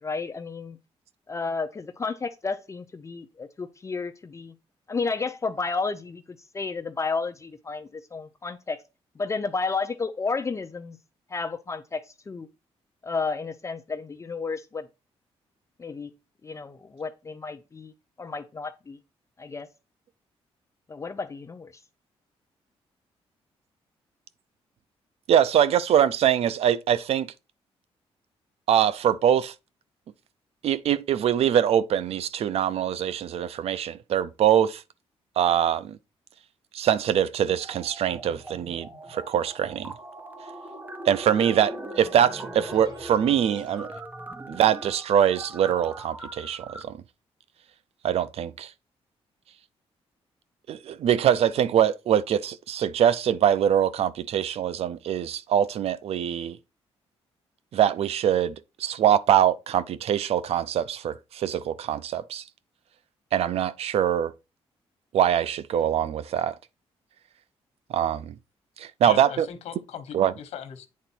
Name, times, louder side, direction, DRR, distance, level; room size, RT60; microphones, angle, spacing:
voice 1, 0.0-0.8 1.3-4.5 4.9-8.8 9.2-11.0 11.3-12.5 13.0-14.9 15.8-16.1 16.4-17.9 18.2-19.0 19.4-19.7 20.9-21.7, left 4 dB, 30° left, 0.6 m, -32 dB
voice 2, 25.3-27.3 28.7-29.5 30.6-34.8 35.4-36.0 36.7-39.9 41.1-43.9 44.5-47.0 48.0-48.7 50.7-56.6 57.7-62.4 63.3-64.3 65.1-66.6 67.9-68.3 68.8-69.5 70.1-70.3, right 9 dB, 70° right, 0.5 m, -23 dB
sound 1, 37.6-38.5 38.8-46.8, right 2 dB, 15° right, 0.9 m, -43 dB
sound 2, 38.1-43.8, equal, 45° right, 2.6 m, -42 dB
voice 3, 69.0-70.9, left 9 dB, 85° left, 1.1 m, -39 dB
8.5 x 3.8 x 4.4 m
cardioid pair, 95°, 11 cm